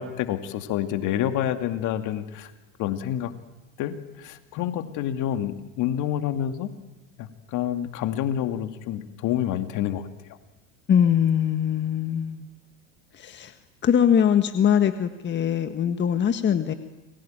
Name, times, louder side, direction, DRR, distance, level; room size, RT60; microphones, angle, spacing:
voice 1, 0.0-2.5 2.8-3.3 3.8-6.7 7.2-10.1, left 11 dB, 50° left, 9 dB, 2.5 m, -28 dB
voice 2, 10.9-12.4 13.1-13.5 13.8-16.7, left 8 dB, 30° left, 9 dB, 1.6 m, -22 dB
29.0 x 21.5 x 9.1 m, 1.1 s
hypercardioid pair, 95°, 38 cm